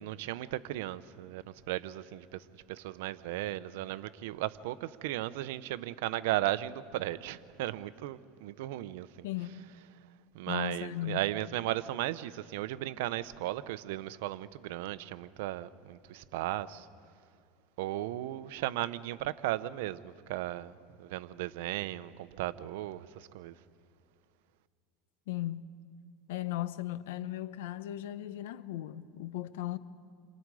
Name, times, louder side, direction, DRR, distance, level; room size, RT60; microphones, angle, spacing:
voice 1, 0.0-9.1 10.3-16.9 17.8-23.5, right 15 dB, 80° right, 0.8 m, -36 dB
voice 2, 9.2-9.6 10.5-11.2 25.3-25.7 26.3-29.8, left 14 dB, 85° left, 0.9 m, -37 dB
29.0 x 26.0 x 4.9 m
supercardioid pair, 130°, 0 cm